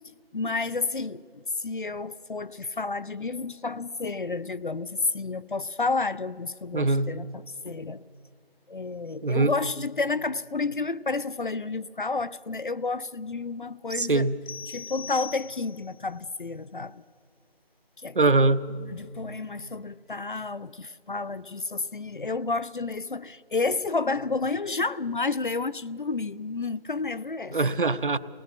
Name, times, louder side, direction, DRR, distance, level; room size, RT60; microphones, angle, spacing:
voice 1, 0.3-8.0 8.7-14.3 14.7-17.0 18.0-18.3 18.9-27.6, left 3 dB, 55° left, 0.5 m, -30 dB
voice 2, 6.7-7.1 9.2-9.5 14.0-14.4 18.1-18.6 27.5-28.2, right 3 dB, 60° right, 0.8 m, -22 dB
sound 1, 14.5-16.0, left 6 dB, 85° left, 0.8 m, -40 dB
23.0 x 19.0 x 5.9 m
figure-of-eight pair, 170°, 30 cm